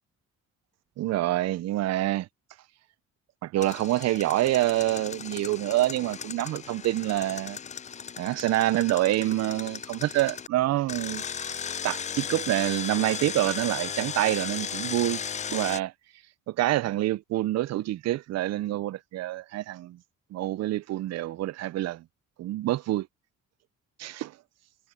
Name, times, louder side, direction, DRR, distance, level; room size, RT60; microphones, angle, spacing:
voice 1, 1.0-2.3 3.4-7.6 8.2-11.2 11.8-15.2 15.5-15.9 16.5-20.0 20.3-22.0 22.4-23.1 24.0-24.3, right 15 dB, 60° right, 0.5 m, -27 dB
Engine, 3.6-10.5 10.9-15.8, left 7 dB, 25° left, 0.4 m, -36 dB
cardioid pair, 90°, 30 cm